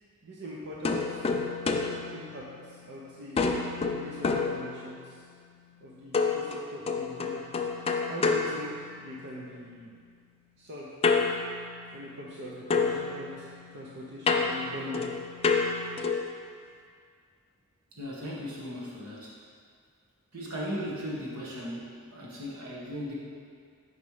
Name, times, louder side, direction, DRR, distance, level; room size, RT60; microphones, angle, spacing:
voice 1, 0.2-1.2 2.1-3.4 3.9-5.2 5.8-7.4 8.1-9.9 10.6-10.9 11.9-15.0, equal, 50° right, -5 dB, 0.7 m, -42 dB
sound 1, 0.8-2.9 3.4-5.2 6.1-9.4 11.0-12.4 12.7-16.4, left 4 dB, 25° left, 0.3 m, -29 dB
voice 2, 17.9-19.3 20.3-23.1, equal, 80° right, -5 dB, 1.3 m, -37 dB
5.2 x 4.3 x 4.8 m, 2.1 s
head